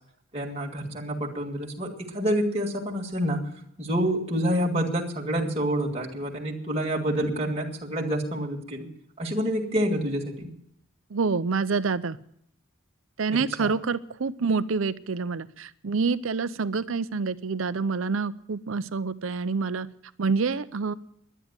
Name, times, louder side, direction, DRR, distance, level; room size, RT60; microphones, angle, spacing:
voice 1, 0.3-3.4 3.8-8.9 9.2-10.5 13.6-13.7, equal, 30° right, 0 dB, 1.8 m, -28 dB
voice 2, 11.1-12.2 13.2-19.9 20.2-20.9, right 4 dB, 80° right, 16 dB, 0.6 m, -27 dB
11.0 x 10.0 x 9.5 m, 0.71 s
head